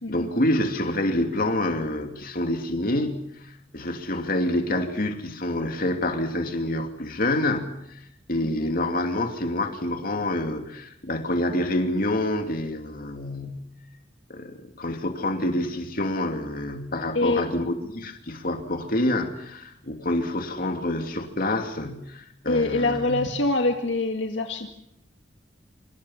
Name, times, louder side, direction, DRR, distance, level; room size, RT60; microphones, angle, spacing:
voice 1, 0.1-8.0 8.3-13.7 14.3-23.3, left 1 dB, 50° left, 5 dB, 2.8 m, -27 dB
voice 2, 8.4-8.7 17.2-17.4 22.5-24.7, left 2 dB, 70° left, 4 dB, 1.9 m, -25 dB
26.0 x 25.5 x 5.8 m, 0.77 s
head